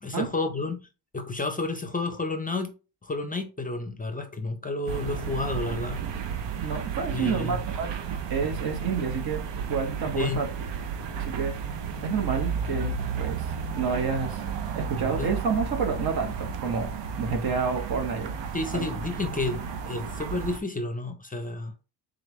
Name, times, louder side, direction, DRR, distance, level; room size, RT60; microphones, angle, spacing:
voice 1, 0.0-0.8 1.1-2.7 3.0-6.0 7.1-7.6 10.2-10.5 15.2-15.3 18.5-21.8, left 3 dB, 20° left, 0.5 m, -31 dB
sound 1, 4.9-20.6, right 6 dB, 80° right, 0.7 m, -33 dB
voice 2, 6.6-7.9 8.3-9.4 9.7-10.5 11.2-11.5 12.0-14.4 14.7-16.9 17.2-18.3 18.7-18.8, right 5 dB, 60° right, 1.1 m, -29 dB
3.8 x 3.2 x 3.1 m
cardioid pair, 100°, 43 cm